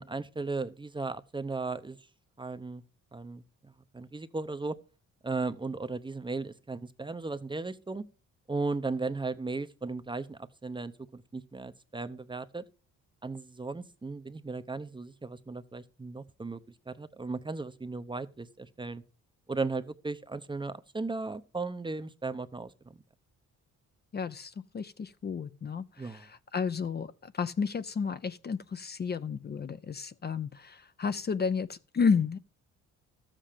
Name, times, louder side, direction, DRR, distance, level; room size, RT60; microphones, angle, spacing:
voice 1, 0.0-2.0 2.4-2.8 3.1-4.8 5.2-8.0 8.5-12.6 13.2-16.6 16.9-19.0 19.5-23.0 26.0-26.2, right 3 dB, 15° right, 0.7 m, -36 dB
voice 2, 24.1-32.4, left 5 dB, 35° left, 0.6 m, -32 dB
13.0 x 7.5 x 5.0 m
cardioid pair, 90°, 30 cm